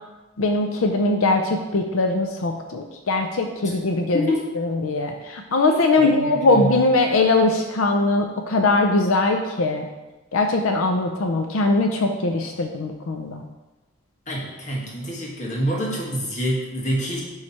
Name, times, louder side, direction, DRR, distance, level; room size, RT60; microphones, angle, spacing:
voice 1, 0.4-4.3 4.8-9.9 10.3-13.4, left 2 dB, 85° left, 4 dB, 0.6 m, -21 dB
voice 2, 5.7-6.8 14.3-17.2, equal, 35° left, -4 dB, 1.5 m, -26 dB
9.4 x 3.3 x 4.2 m, 1.1 s
head